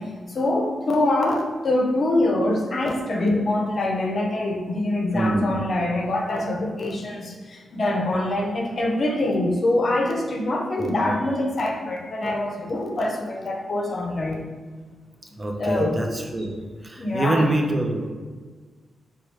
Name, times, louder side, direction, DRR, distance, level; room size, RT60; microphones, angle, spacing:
voice 1, 0.0-14.4 15.6-16.0 17.0-17.5, left 1 dB, 55° left, 1 dB, 0.6 m, -24 dB
voice 2, 5.1-5.7 10.8-11.2 15.4-16.5 16.8-18.1, right 1 dB, 30° right, 2 dB, 0.5 m, -25 dB
3.1 x 2.3 x 3.0 m, 1.4 s
supercardioid pair, 50°, 0 cm